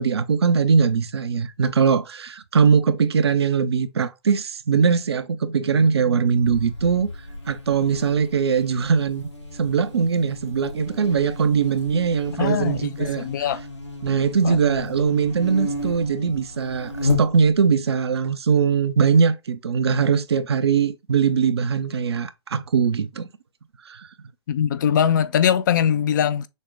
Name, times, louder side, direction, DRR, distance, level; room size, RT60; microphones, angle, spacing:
voice 1, 0.0-7.1 7.5-9.3 9.6-13.3 14.0-23.3 23.9-24.1, right 6 dB, 65° right, 0.6 m, -21 dB
Buzz, 6.4-17.8, left 2 dB, 85° left, 1.5 m, -33 dB
voice 2, 12.4-13.6 14.4-14.6 24.5-26.5, left 8 dB, 45° left, 0.4 m, -21 dB
6.4 x 2.2 x 3.4 m
figure-of-eight pair, 120°, 15 cm